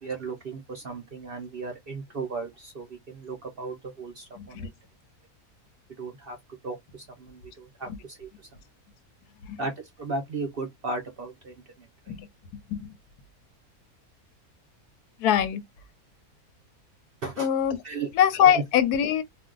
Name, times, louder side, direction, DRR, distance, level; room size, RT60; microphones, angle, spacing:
voice 1, 0.0-4.7 6.0-6.4 6.6-8.3 9.6-9.7 10.0-12.2 17.2-17.5 17.8-18.1, right 3 dB, 55° right, 0.6 m, -36 dB
voice 2, 4.4-4.7 9.5-9.6 12.1-12.3 12.7-12.9 15.2-15.6 17.4-17.8 18.1-19.2, left 9 dB, 90° left, 1.1 m, -23 dB
2.5 x 2.2 x 3.7 m
omnidirectional pair, 1.6 m